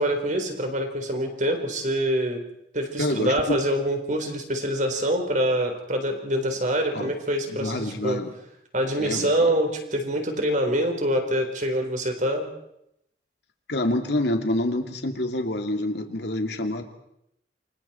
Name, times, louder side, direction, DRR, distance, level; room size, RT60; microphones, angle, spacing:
voice 1, 0.0-2.4 2.7-8.2 8.7-12.5, right 1 dB, 45° right, 5 dB, 4.3 m, -25 dB
voice 2, 3.0-3.4 6.9-7.1 7.5-8.3 9.0-9.5 13.7-16.8, left 1 dB, 70° left, 5 dB, 2.6 m, -27 dB
28.5 x 25.5 x 4.5 m, 0.79 s
head